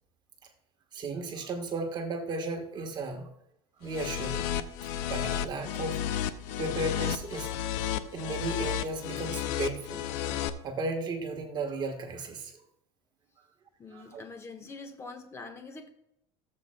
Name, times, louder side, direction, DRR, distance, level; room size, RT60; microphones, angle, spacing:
voice 1, 0.9-3.3 3.8-4.5 5.1-6.0 6.6-7.6 8.1-10.3 10.6-12.5 13.9-14.2, right 2 dB, 35° right, 4 dB, 1.3 m, -35 dB
sound 1, 3.9-10.5, left 11 dB, 65° left, 0.7 m, -32 dB
voice 2, 13.8-15.9, left 3 dB, 20° left, 5 dB, 1.3 m, -44 dB
17.0 x 7.6 x 2.2 m, 0.77 s
supercardioid pair, 140°, 14 cm